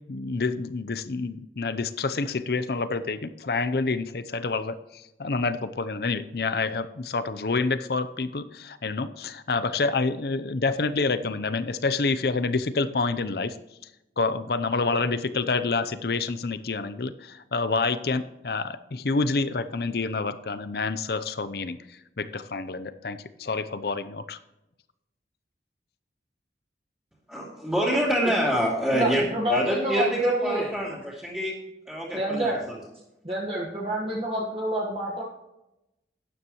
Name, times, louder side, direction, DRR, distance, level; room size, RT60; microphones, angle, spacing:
voice 1, 0.1-13.6 14.2-21.8 22.2-24.4, left 3 dB, 60° left, 12 dB, 0.6 m, -28 dB
voice 2, 27.3-29.2 29.5-31.5 31.9-32.5, equal, 5° right, -6 dB, 2.7 m, -26 dB
voice 3, 28.9-30.7 32.1-32.6 33.2-35.2, right 1 dB, 30° right, -4 dB, 1.3 m, -28 dB
12.5 x 9.7 x 3.0 m, 0.93 s
head